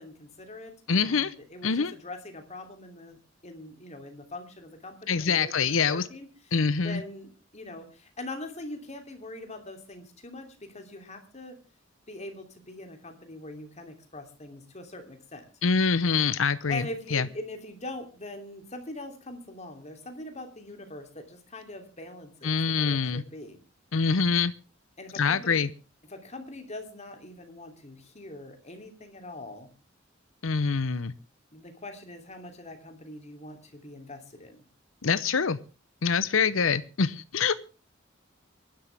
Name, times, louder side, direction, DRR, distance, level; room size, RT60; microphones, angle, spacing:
voice 1, 0.0-3.2 3.4-6.5 6.8-11.6 12.1-15.4 16.7-23.6 25.0-25.6 26.1-29.7 31.5-34.6, left 1 dB, 35° left, 5 dB, 3.0 m, -42 dB
voice 2, 0.9-1.3 1.6-1.9 5.1-6.0 6.5-7.0 15.6-17.3 22.4-23.2 23.9-24.5 25.1-25.7 30.4-31.1 35.0-35.6 36.0-37.6, left 5 dB, 85° left, 15 dB, 0.8 m, -25 dB
24.5 x 11.5 x 3.5 m, 0.33 s
head